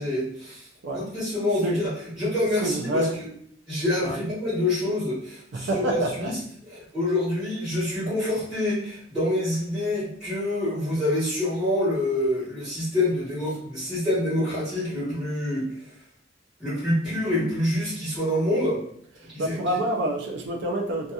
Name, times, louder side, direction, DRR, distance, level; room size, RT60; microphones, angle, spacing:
voice 1, 0.0-0.7 0.9-1.9 2.2-3.3 3.7-6.4 6.7-15.8 16.6-18.8 19.3-19.8, left 1 dB, 5° right, -13 dB, 1.2 m, -26 dB
voice 2, 2.6-3.2 4.0-4.2 5.5-6.3 19.2-21.1, right 1 dB, 65° right, 1 dB, 0.4 m, -27 dB
2.7 x 2.3 x 2.3 m, 0.64 s
head